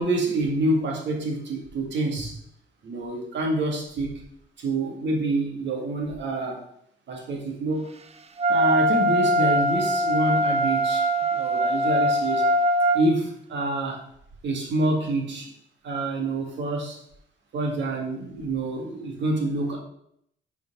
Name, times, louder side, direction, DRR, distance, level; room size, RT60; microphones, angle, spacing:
voice 1, 0.0-2.4 2.8-4.1 4.6-6.7 7.1-7.9 8.5-12.4 12.9-14.0 14.4-15.5 15.8-17.0 17.5-19.8, right 2 dB, 65° right, 1 dB, 2.0 m, -27 dB
Wind instrument woodwind instrument, 8.4-13.0, equal, 30° right, 0.6 m, -22 dB
5.3 x 4.6 x 6.1 m, 0.71 s
cardioid pair, 90°, 20 cm